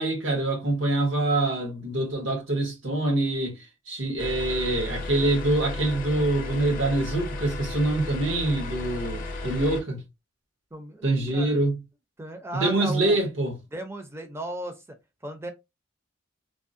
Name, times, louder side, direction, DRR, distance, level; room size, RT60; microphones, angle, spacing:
voice 1, 0.0-3.6 3.9-10.0 11.0-11.8 12.5-13.5, right 2 dB, 80° right, 1.2 m, -25 dB
sound 1, 4.2-9.8, left 2 dB, 45° left, 0.6 m, -34 dB
voice 2, 10.7-11.6 12.2-13.2 13.7-15.0 15.2-15.5, right 1 dB, 15° right, 0.5 m, -36 dB
3.3 x 2.1 x 2.6 m
head